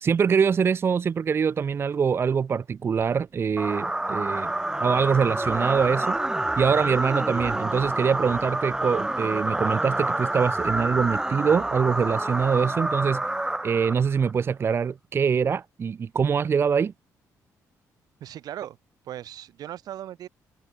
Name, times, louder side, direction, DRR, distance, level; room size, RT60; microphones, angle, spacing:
voice 1, 0.0-4.5 4.8-6.2 6.6-13.2 13.6-16.9, right 6 dB, 40° right, 0.5 m, -24 dB
sound 1, 3.6-14.3, right 1 dB, 10° right, 0.9 m, -27 dB
voice 2, 18.2-18.8 19.0-20.3, right 12 dB, 75° right, 6.9 m, -38 dB
cardioid pair, 105°, 7 cm